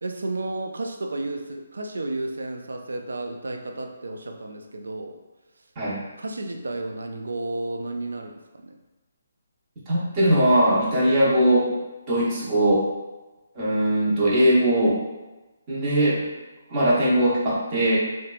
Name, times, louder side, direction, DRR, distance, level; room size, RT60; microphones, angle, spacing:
voice 1, 0.0-5.2 6.2-8.7, right 2 dB, 85° right, 4 dB, 0.3 m, -32 dB
voice 2, 9.9-11.7 12.1-12.8 13.5-15.0 15.7-16.2 16.7-18.0, right 1 dB, 30° right, -7 dB, 0.9 m, -20 dB
2.8 x 2.1 x 2.4 m, 1.1 s
hypercardioid pair, 155°, 0 cm